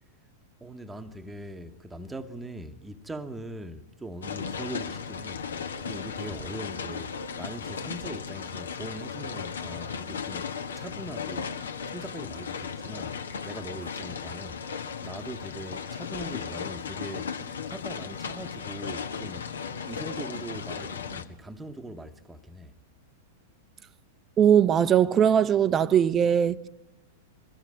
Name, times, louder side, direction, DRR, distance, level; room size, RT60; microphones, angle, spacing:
voice 1, 0.6-5.6 5.8-11.6 11.9-13.2 13.4-14.6 15.0-19.5 19.9-22.8, right 1 dB, 10° right, 1.1 m, -41 dB
sound 1, 4.2-21.2, left 6 dB, 65° left, 1.2 m, -36 dB
voice 2, 24.4-26.7, right 9 dB, 25° right, 0.7 m, -20 dB
22.0 x 15.5 x 9.7 m
figure-of-eight pair, 95°, 0 cm